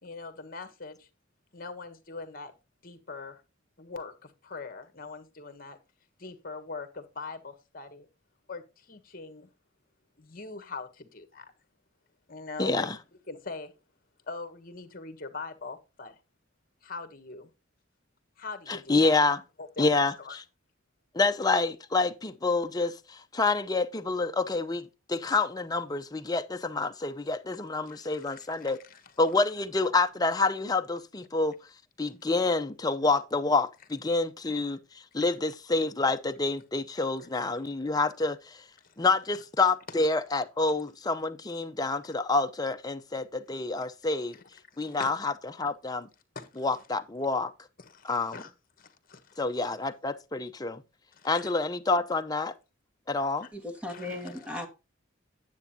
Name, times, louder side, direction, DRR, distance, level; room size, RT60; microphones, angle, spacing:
voice 1, 0.0-1.1 1.5-2.5 2.8-3.4 3.8-5.8 6.2-8.1 8.5-9.5 10.2-11.4 12.3-12.9 13.3-13.7 14.3-16.2 16.8-17.5 18.4-19.1 19.6-20.4 27.9-29.1 38.8-38.9 39.3-39.4 44.3-44.4 44.8-45.1 46.3-46.6 47.8-48.5 48.8-49.8 51.1-51.5 53.9-54.7, left 4 dB, 45° left, 1.4 m, -42 dB
voice 2, 12.6-13.0 18.7-19.4 19.8-20.4 21.1-28.8 29.2-31.5 32.0-34.8 35.1-38.6 39.0-44.4 44.8-46.1 46.6-47.5 48.0-48.4 49.4-50.8 51.2-52.5 53.1-53.5, left 3 dB, 20° left, 0.7 m, -28 dB
voice 3, 53.5-54.7, left 2 dB, 5° right, 1.6 m, -37 dB
9.5 x 8.0 x 2.8 m
head